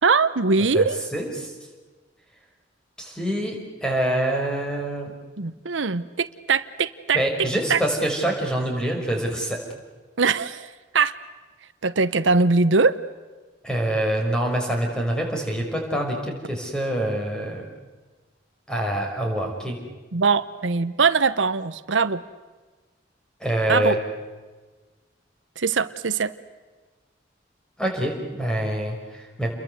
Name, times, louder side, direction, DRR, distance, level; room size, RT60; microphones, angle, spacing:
voice 1, 0.0-1.0 5.4-7.2 7.7-7.8 10.2-11.1 11.8-13.0 20.1-22.2 23.7-24.0 25.6-26.3, right 4 dB, 85° right, 14 dB, 0.9 m, -21 dB
voice 2, 0.7-1.5 3.0-5.1 7.1-9.6 13.6-17.7 18.7-19.8 23.4-24.0 27.8-29.5, right 1 dB, 5° left, 1 dB, 5.8 m, -25 dB
30.0 x 22.0 x 8.1 m, 1.3 s
head